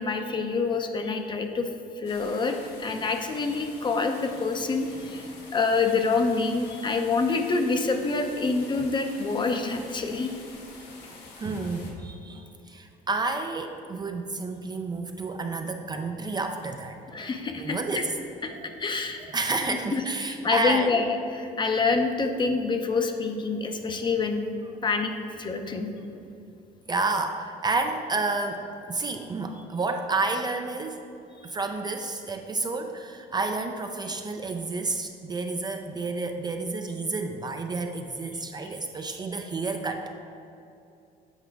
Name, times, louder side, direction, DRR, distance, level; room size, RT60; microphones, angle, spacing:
voice 1, 0.0-1.7 2.0-5.3 5.5-10.3 17.1-17.8 18.4-18.5 18.8-19.3 19.9-20.0 20.4-24.4 24.8-25.1 25.4-25.9, left 4 dB, 25° left, 5 dB, 0.6 m, -26 dB
sound 1, 2.0-11.9, left 3 dB, 80° left, 1.1 m, -47 dB
voice 2, 11.4-17.3 17.6-18.2 18.5-18.8 19.3-21.0 26.9-31.0 31.4-40.1, right 3 dB, 25° right, 5 dB, 0.4 m, -30 dB
8.0 x 4.8 x 3.5 m, 2.7 s
cardioid pair, 110°, 17 cm